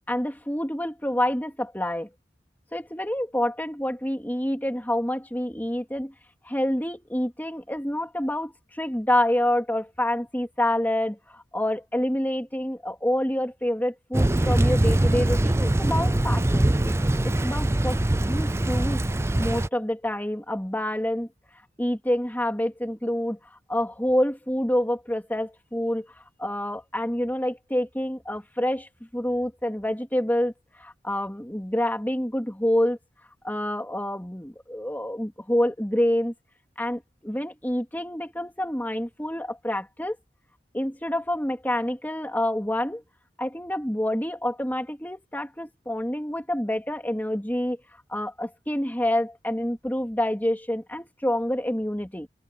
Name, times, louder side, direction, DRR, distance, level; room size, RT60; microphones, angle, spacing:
voice 1, 0.1-2.1 2.7-6.1 6.4-16.9 17.2-18.0 18.3-19.0 19.4-21.3 21.8-26.1 26.4-30.5 30.8-33.0 33.4-36.3 36.8-40.2 40.7-43.0 43.4-47.8 48.1-52.3, left 1 dB, 10° left, 2.9 m, -27 dB
Thunder / Rain, 14.1-19.7, right 1 dB, 15° right, 0.5 m, -22 dB
head